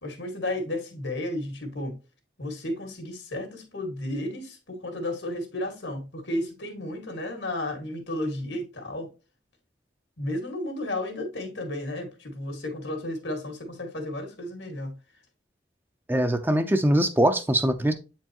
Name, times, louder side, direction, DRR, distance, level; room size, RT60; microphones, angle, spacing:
voice 1, 0.0-2.0 2.4-9.1 10.2-15.0, left 1 dB, 90° left, 1.9 m, -33 dB
voice 2, 16.1-17.9, right 1 dB, 10° right, 0.5 m, -22 dB
8.3 x 4.5 x 2.9 m
head